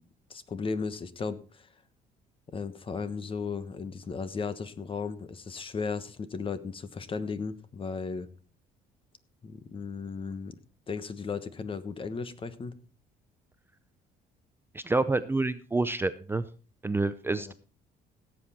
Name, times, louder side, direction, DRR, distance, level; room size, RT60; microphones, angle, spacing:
voice 1, 0.3-1.7 2.5-8.3 9.4-10.6 10.9-12.7 17.3-17.5, left 5 dB, 30° left, 13 dB, 1.2 m, -35 dB
voice 2, 14.7-16.4 16.8-17.5, right 3 dB, 15° right, 12 dB, 0.6 m, -28 dB
17.0 x 7.9 x 4.3 m, 0.38 s
cardioid pair, 110°, 17 cm